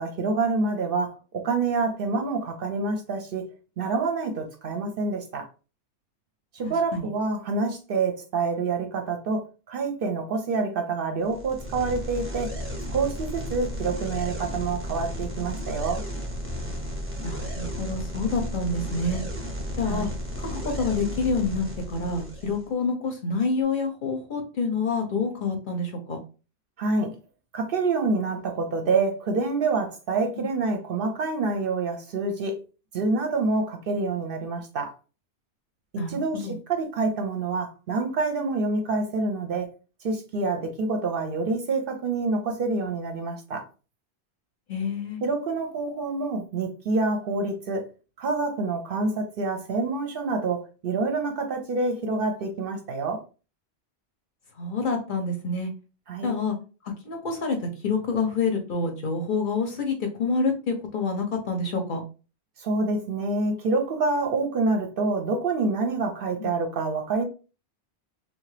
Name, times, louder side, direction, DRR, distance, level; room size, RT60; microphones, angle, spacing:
voice 1, 0.0-3.5 3.8-5.5 6.5-12.5 12.9-16.0 19.9-20.1 26.8-27.2 27.5-32.5 32.9-34.9 35.9-39.7 40.0-43.6 45.2-47.9 48.2-53.2 56.1-56.3 62.6-67.2, right 3 dB, 60° right, 0.7 m, -27 dB
voice 2, 6.6-7.1 17.2-19.2 19.8-20.1 20.4-26.2 30.4-30.5 36.0-36.5 44.7-45.2 54.6-55.7 56.2-56.6 57.0-62.0 66.4-66.5, left 4 dB, 55° left, 0.7 m, -27 dB
sound 1, 11.2-22.7, equal, 15° right, 0.5 m, -33 dB
2.8 x 2.3 x 3.1 m
omnidirectional pair, 1.1 m